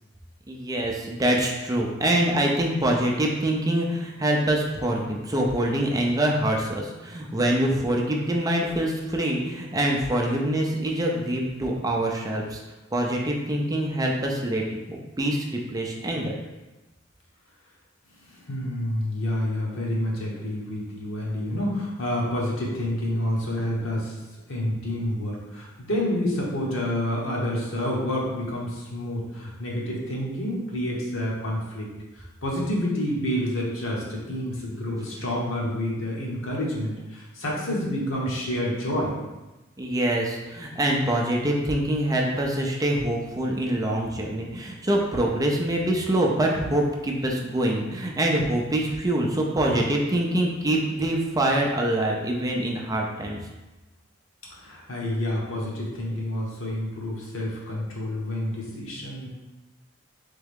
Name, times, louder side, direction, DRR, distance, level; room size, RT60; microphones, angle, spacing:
voice 1, 0.5-12.6 12.9-16.4 39.8-53.4, right 1 dB, 20° right, 0 dB, 0.5 m, -25 dB
voice 2, 18.3-24.2 24.5-31.9 32.1-39.1 54.5-59.3, left 1 dB, 85° left, -3 dB, 1.1 m, -28 dB
3.6 x 3.4 x 3.5 m, 1.1 s
head